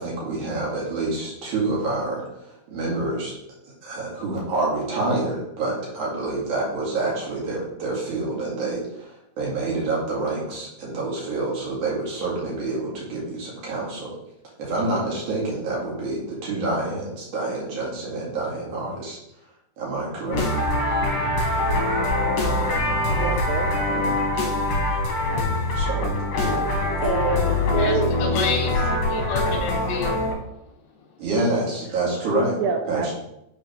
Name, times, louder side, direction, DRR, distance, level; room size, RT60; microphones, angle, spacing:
voice 1, 0.0-3.3 3.7-14.1 14.6-19.2 19.8-20.5 23.8-24.2 25.7-26.6 31.2-32.6 32.9-33.2, right 2 dB, 50° right, -4 dB, 3.1 m, -27 dB
sound 1, 20.3-30.3, left 2 dB, 60° left, 3.0 m, -23 dB
voice 2, 23.2-23.7 27.0-28.1 32.6-33.2, right 5 dB, 85° right, 4 dB, 2.3 m, -26 dB
voice 3, 27.8-30.2, left 4 dB, 75° left, 0 dB, 2.1 m, -29 dB
9.1 x 3.9 x 4.5 m, 0.83 s
omnidirectional pair, 5.3 m